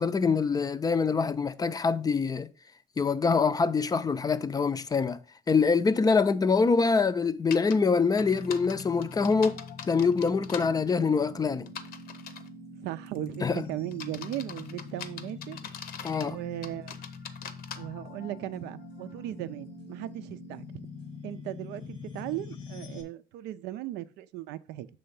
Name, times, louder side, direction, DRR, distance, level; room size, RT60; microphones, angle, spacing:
voice 1, 0.0-2.5 3.0-5.2 5.5-9.6 9.9-11.7 13.4-13.6 16.0-16.4, left 5 dB, 20° left, 0.4 m, -25 dB
sound 1, 7.5-7.8 8.2-10.7 11.7-12.5 13.1-13.4 13.9-16.3 16.6-17.8, left 7 dB, 65° left, 0.7 m, -41 dB
sound 2, 8.2-23.0, left 4 dB, 90° left, 1.2 m, -44 dB
voice 2, 12.8-15.6 16.2-16.9 17.8-20.9 21.2-24.9, right 14 dB, 90° right, 0.5 m, -37 dB
6.7 x 3.4 x 5.4 m
cardioid pair, 110°, 17 cm